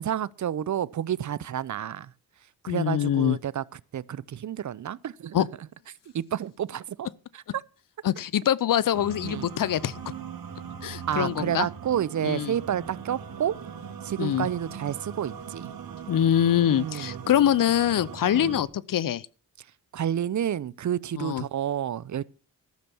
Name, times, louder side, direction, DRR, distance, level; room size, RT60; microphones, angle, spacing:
voice 1, 0.0-2.1 2.6-3.6 3.9-5.5 6.1-7.1 7.3-7.6 9.2-9.5 11.1-13.5 14.0-15.7 16.7-17.2 18.3-18.6 19.9-22.2, right 10 dB, 55° right, 0.6 m, -30 dB
voice 2, 2.7-3.4 5.3-5.4 8.0-9.9 10.8-11.7 12.2-12.5 14.2-14.5 16.1-19.2 21.2-21.4, left 10 dB, 65° left, 0.7 m, -24 dB
sound 1, 8.9-18.6, right 7 dB, 80° right, 1.9 m, -40 dB
13.5 x 6.8 x 6.0 m
cardioid pair, 70°, 35 cm